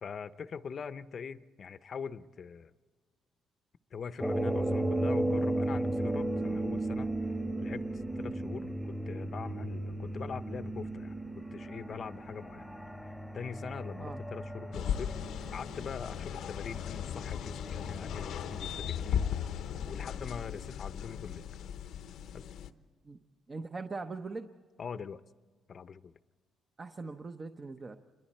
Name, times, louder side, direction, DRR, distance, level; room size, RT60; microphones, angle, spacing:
voice 1, 0.0-2.7 3.9-7.1 7.6-12.7 13.0-15.2 15.5-19.2 19.9-21.4 22.3-22.5 24.8-25.2 25.7-26.1, left 6 dB, 50° left, 13 dB, 0.7 m, -43 dB
sound 1, 4.2-19.7, right 1 dB, 5° right, 1.2 m, -35 dB
sound 2, 14.7-22.7, left 9 dB, 80° left, 0.8 m, -37 dB
voice 2, 23.5-24.5 26.8-28.0, right 3 dB, 35° right, 6 dB, 0.9 m, -41 dB
27.5 x 23.0 x 4.3 m, 1.5 s
cardioid pair, 90°, 0 cm